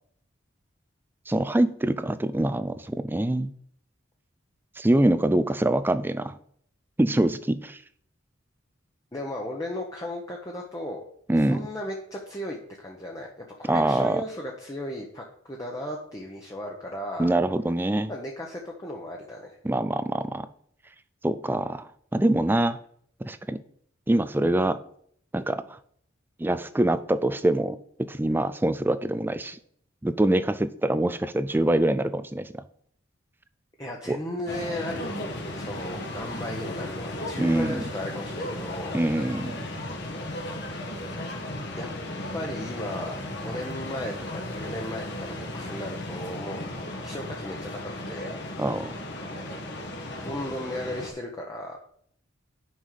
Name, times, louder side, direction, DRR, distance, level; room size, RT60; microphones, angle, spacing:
voice 1, 1.3-3.5 4.8-6.4 7.0-7.8 11.3-11.7 13.7-14.2 17.2-18.1 19.6-20.5 21.2-22.8 23.2-23.6 24.1-24.8 25.3-25.8 26.4-29.6 30.0-32.6 34.1-34.2 37.4-37.8 38.9-39.6 48.6-48.9, right 1 dB, 10° right, 13 dB, 0.3 m, -24 dB
voice 2, 9.1-11.0 11.5-17.3 18.1-19.6 33.8-35.2 35.5-39.0 41.8-41.9 42.3-43.2 43.4-46.7 47.0-47.8 48.1-48.3 49.5-49.8 50.2-51.8, left 1 dB, 15° left, -1 dB, 0.9 m, -35 dB
sound 1, 34.5-51.1, left 1 dB, 55° left, 1.4 m, -35 dB
6.3 x 5.5 x 6.7 m, 0.65 s
head